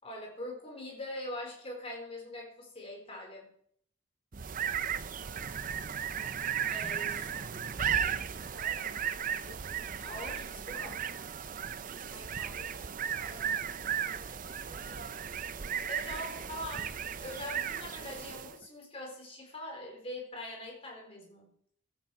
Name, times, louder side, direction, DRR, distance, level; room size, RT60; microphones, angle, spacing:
voice 1, 0.0-3.5 6.7-7.2 10.0-10.9 15.9-16.9 17.2-21.6, left 1 dB, 30° left, 1 dB, 4.3 m, -42 dB
sound 1, 4.3-18.6, right 8 dB, 40° right, 0.5 m, -35 dB
voice 2, 5.3-5.7 6.0-10.1 10.4-10.9 12.1-15.4 16.5-16.9, right 1 dB, 55° right, -4 dB, 6.0 m, -53 dB
16.0 x 13.0 x 4.8 m, 0.63 s
head